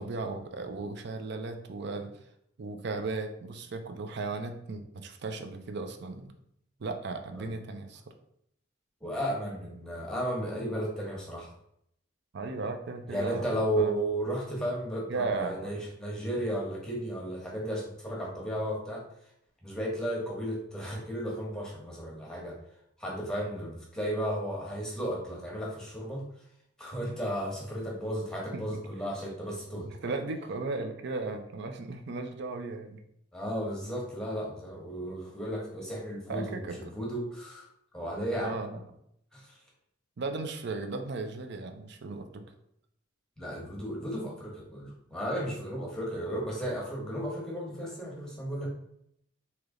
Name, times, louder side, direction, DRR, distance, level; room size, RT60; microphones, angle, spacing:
voice 1, 0.0-2.2 2.6-6.3 6.8-8.0 12.3-13.5 13.8-13.9 15.1-15.8 28.5-28.6 29.7-33.0 36.3-36.8 38.4-38.8 40.2-42.4, right 3 dB, 60° right, 6 dB, 0.5 m, -36 dB
voice 2, 9.0-11.5 13.1-19.0 19.6-22.6 23.0-26.2 26.8-30.1 33.3-37.7 37.9-38.5 39.3-39.6 43.4-48.7, equal, 5° left, -3 dB, 1.0 m, -34 dB
3.2 x 2.9 x 3.7 m, 0.74 s
head